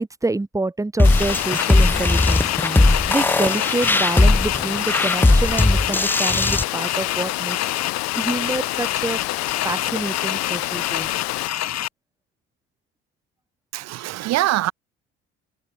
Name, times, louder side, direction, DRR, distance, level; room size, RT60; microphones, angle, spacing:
voice 1, 0.0-7.6 7.9-9.2 9.6-11.1, right 2 dB, 10° right, 1.2 m, -27 dB
Water, 1.0-11.5, left 27 dB, 75° left, 1.3 m, -28 dB
sound 1, 1.0-6.6, left 2 dB, 5° left, 0.6 m, -18 dB
sound 2, 1.2-11.9, left 12 dB, 60° left, 2.9 m, -28 dB
voice 2, 13.7-14.7, right 16 dB, 60° right, 0.7 m, -23 dB
hypercardioid pair, 60°, 30 cm